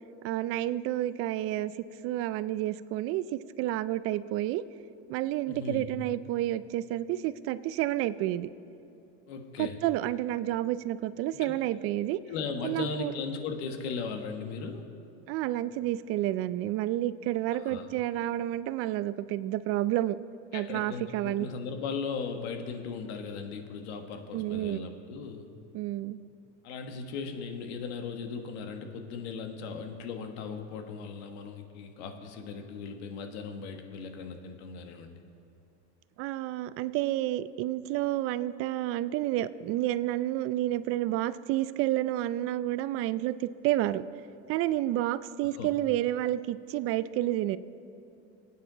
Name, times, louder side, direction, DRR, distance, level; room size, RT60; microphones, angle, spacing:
voice 1, 0.2-1.7 2.0-3.2 3.6-4.6 5.1-8.5 9.6-12.2 12.6-13.1 15.3-20.2 20.5-21.5 24.3-24.9 25.7-26.2 36.2-44.0 44.5-47.6, right 14 dB, 40° right, 15 dB, 0.5 m, -30 dB
voice 2, 5.5-5.9 9.3-9.8 11.3-11.6 12.3-14.8 17.5-17.9 20.5-25.5 26.6-35.1 45.5-45.7, left 5 dB, 70° left, 5 dB, 1.5 m, -37 dB
25.5 x 9.3 x 4.0 m, 2.7 s
supercardioid pair, 125°, 34 cm